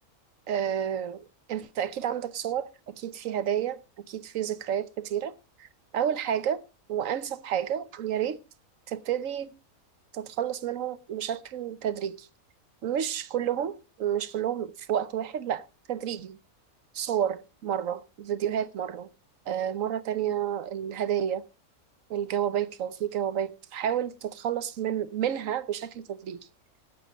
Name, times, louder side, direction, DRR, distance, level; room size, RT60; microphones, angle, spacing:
voice 1, 0.5-3.8 4.1-5.3 5.6-5.7 5.9-6.6 6.9-8.4 8.9-9.5 10.1-12.3 12.8-16.4 16.9-19.1 19.5-21.4 22.1-26.5, right 9 dB, 65° right, 1.2 m, -30 dB
12.0 x 8.6 x 5.0 m
omnidirectional pair, 1.5 m